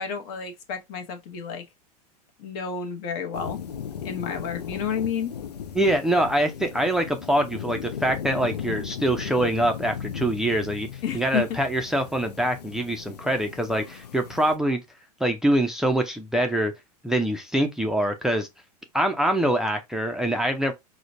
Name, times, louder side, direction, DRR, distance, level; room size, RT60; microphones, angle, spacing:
voice 1, 0.0-1.6 2.4-3.6 4.0-5.3 11.0-11.6, left 7 dB, 45° left, 0.8 m, -30 dB
sound 1, 3.3-14.6, left 8 dB, 85° left, 0.5 m, -37 dB
voice 2, 5.7-10.9 11.1-14.8 15.2-16.7 17.0-18.5 18.9-20.7, right 1 dB, 5° right, 0.4 m, -24 dB
4.9 x 2.1 x 2.5 m
hypercardioid pair, 100°, 20 cm